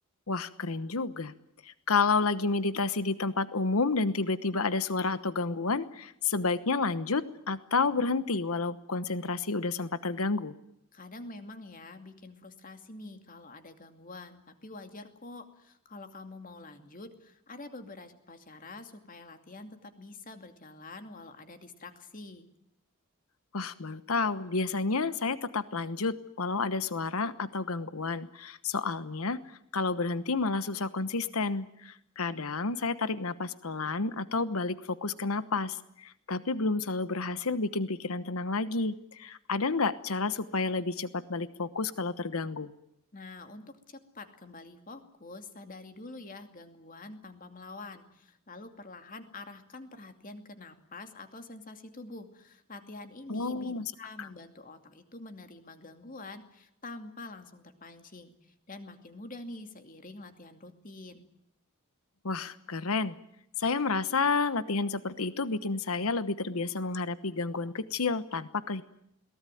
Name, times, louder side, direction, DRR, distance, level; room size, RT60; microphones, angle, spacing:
voice 1, 0.3-1.3 1.6-10.5 23.5-42.7 53.3-53.9 54.2-54.3 62.2-63.2 63.6-68.8, left 4 dB, 80° left, 13 dB, 1.1 m, -30 dB
voice 2, 10.9-22.5 43.1-61.3, left 2 dB, 40° left, 7 dB, 2.5 m, -46 dB
22.0 x 19.0 x 9.2 m, 0.78 s
head